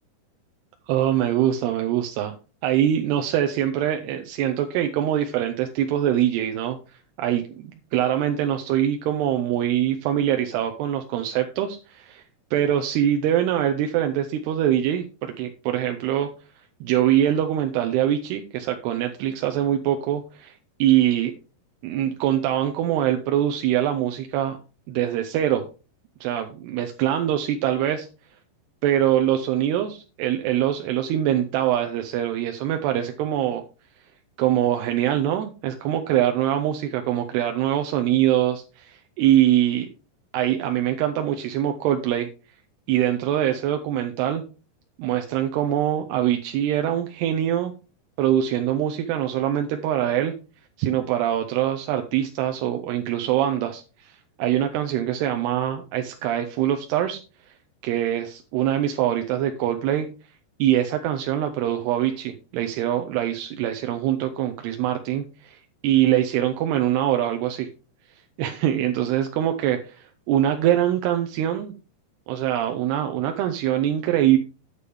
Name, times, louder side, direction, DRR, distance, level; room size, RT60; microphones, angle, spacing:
voice 1, 0.9-2.3 2.6-6.8 7.2-12.2 12.5-16.3 16.8-20.5 20.8-21.3 21.8-24.6 24.9-25.7 26.2-28.1 28.8-33.6 34.4-39.9 40.3-42.3 42.9-44.4 45.0-47.7 48.2-50.3 50.8-57.2 57.8-60.1 60.6-65.6 65.8-67.7 68.4-71.7 72.3-74.4, right 11 dB, 80° right, 5 dB, 2.8 m, -23 dB
9.6 x 8.3 x 3.5 m, 0.33 s
omnidirectional pair, 4.8 m